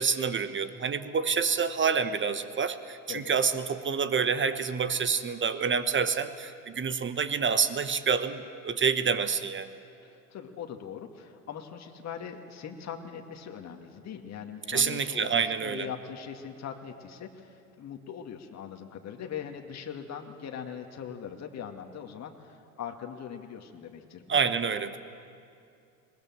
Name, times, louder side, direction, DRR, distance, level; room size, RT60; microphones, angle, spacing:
voice 1, 0.0-9.8 14.7-15.9 24.3-25.0, right 6 dB, 25° right, 11 dB, 1.2 m, -28 dB
voice 2, 10.0-24.4, left 8 dB, 35° left, 3 dB, 2.1 m, -41 dB
21.5 x 20.0 x 7.5 m, 2.5 s
hypercardioid pair, 75°, 45 cm